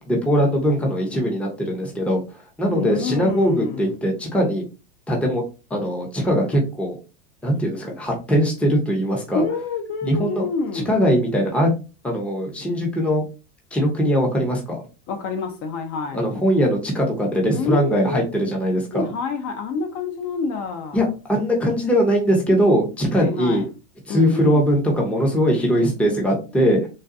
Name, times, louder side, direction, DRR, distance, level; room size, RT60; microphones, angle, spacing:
voice 1, 0.0-2.2 2.6-4.6 5.1-5.4 5.7-7.0 7.4-9.4 10.0-10.4 10.7-11.7 12.0-13.2 13.7-14.8 16.1-19.1 20.9-23.6 24.1-26.9, equal, 5° left, 0.6 m, -21 dB
voice 2, 2.6-3.9 9.3-10.9 15.1-16.2 17.5-18.3 18.9-21.1 23.1-23.7 24.1-24.7, left 4 dB, 40° left, 0.6 m, -27 dB
3.9 x 2.3 x 2.5 m
supercardioid pair, 120°, 46 cm